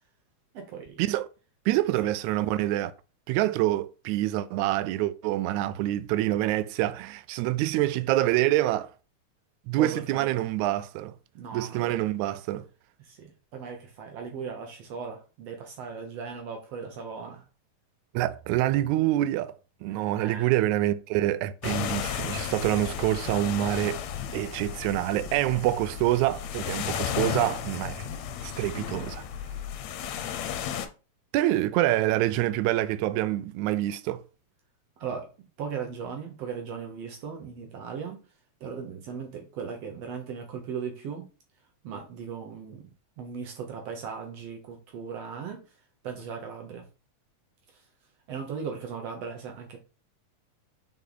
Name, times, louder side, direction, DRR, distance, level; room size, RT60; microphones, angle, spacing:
voice 1, 0.5-1.0 2.0-2.1 9.8-10.5 11.4-12.1 13.0-17.4 19.9-20.5 35.0-35.3 35.6-38.2 38.6-41.3 41.8-42.9 43.2-45.6 46.0-46.8 47.7-47.9 48.3-49.8, right 6 dB, 65° right, 1.9 m, -38 dB
voice 2, 1.7-2.9 3.3-8.9 9.7-11.1 11.5-12.7 18.1-19.5 19.8-24.0 24.3-28.1 28.4-29.2 31.3-34.2, right 15 dB, 85° right, 1.9 m, -26 dB
sound 1, 21.6-30.9, left 9 dB, 75° left, 1.9 m, -34 dB
5.5 x 4.6 x 3.9 m
omnidirectional pair, 3.4 m